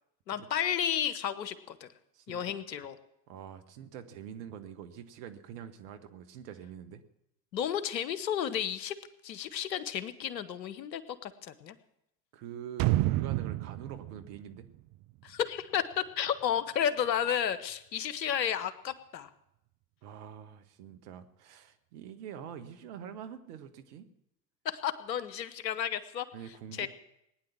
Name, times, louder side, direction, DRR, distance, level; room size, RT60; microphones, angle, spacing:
voice 1, 0.3-1.9 2.3-2.9 7.5-8.9 9.2-11.8 15.2-19.3 24.6-26.3 26.7-26.9, left 9 dB, 85° left, 14 dB, 1.1 m, -32 dB
voice 2, 2.1-2.5 3.3-7.0 12.3-14.7 20.0-24.1 26.3-26.9, right 8 dB, 65° right, 10 dB, 1.7 m, -45 dB
sound 1, 12.8-15.6 15.9-16.0, right 17 dB, 45° right, 0.5 m, -30 dB
19.0 x 9.7 x 7.4 m, 0.81 s
hypercardioid pair, 70°, 50 cm